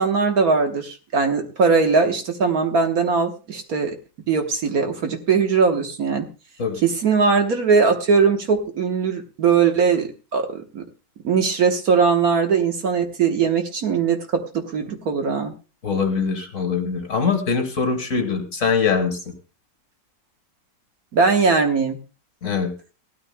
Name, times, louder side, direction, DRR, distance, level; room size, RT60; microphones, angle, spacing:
voice 1, 0.0-3.9 4.3-6.3 6.8-10.8 11.2-15.5 21.1-22.0, right 5 dB, 60° right, 4 dB, 1.6 m, -20 dB
voice 2, 15.8-19.2 22.4-22.7, left 5 dB, 45° left, 6 dB, 1.9 m, -22 dB
18.0 x 13.0 x 2.2 m, 0.32 s
omnidirectional pair, 1.9 m